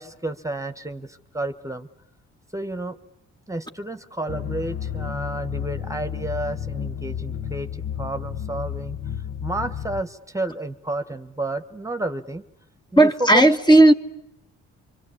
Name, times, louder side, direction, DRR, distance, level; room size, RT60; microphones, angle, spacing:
voice 1, 0.0-1.9 2.5-3.0 3.5-7.7 8.0-9.2 9.4-12.4 12.9-13.6, right 2 dB, 10° right, 10 dB, 1.4 m, -31 dB
sound 1, 4.3-10.0, left 9 dB, 50° left, 1.1 m, -32 dB
voice 2, 13.0-13.9, right 1 dB, 15° left, 6 dB, 1.4 m, -13 dB
26.0 x 25.0 x 8.6 m, 0.86 s
cardioid pair, 90°, 30 cm